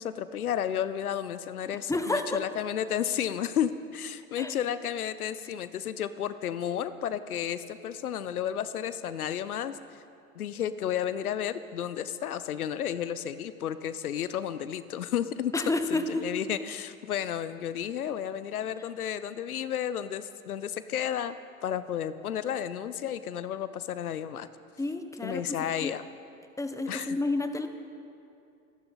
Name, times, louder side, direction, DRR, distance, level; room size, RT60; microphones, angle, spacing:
voice 1, 0.0-9.8 10.4-15.5 15.9-21.4 21.6-24.5 25.2-26.1 26.9-27.2, left 9 dB, 85° left, 14 dB, 0.7 m, -32 dB
voice 2, 1.9-2.4 4.4-4.5 15.5-16.3 24.8-25.9 26.6-27.7, left 2 dB, 5° left, 8 dB, 1.3 m, -30 dB
28.5 x 11.0 x 4.1 m, 2.5 s
hypercardioid pair, 80°, 43 cm